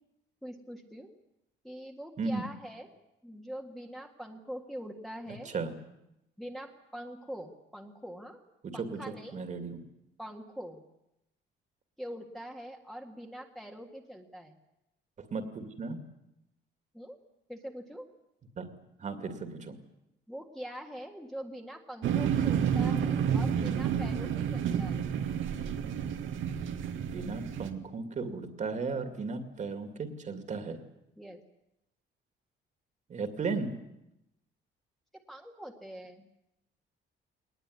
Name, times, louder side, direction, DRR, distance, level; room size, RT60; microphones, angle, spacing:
voice 1, 0.4-1.1 1.6-2.9 3.2-5.5 6.4-8.4 8.7-9.4 10.2-10.8 12.0-14.6 16.9-17.2 17.5-18.1 20.3-25.1 31.2-31.4 35.3-36.3, equal, ahead, 1 dB, 1.8 m, -43 dB
voice 2, 5.3-5.7 8.6-9.8 15.2-16.0 18.6-18.7 19.0-19.8 27.0-30.8 33.1-33.7, right 4 dB, 35° right, 7 dB, 2.4 m, -35 dB
sound 1, 22.0-27.7, right 8 dB, 80° right, 2.0 m, -30 dB
21.5 x 19.5 x 9.6 m, 0.87 s
cardioid pair, 160°, 20 cm